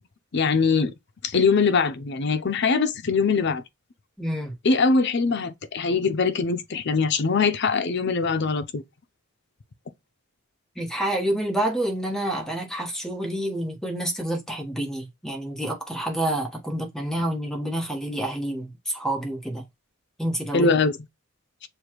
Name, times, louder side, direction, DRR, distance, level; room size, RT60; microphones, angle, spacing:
voice 1, 0.3-0.9 1.2-3.6 4.6-8.8 20.5-20.9, left 4 dB, 55° left, 0.6 m, -22 dB
voice 2, 4.2-4.5 10.7-19.6 20.2-20.7, right 1 dB, ahead, 1.2 m, -28 dB
6.9 x 2.3 x 3.0 m
head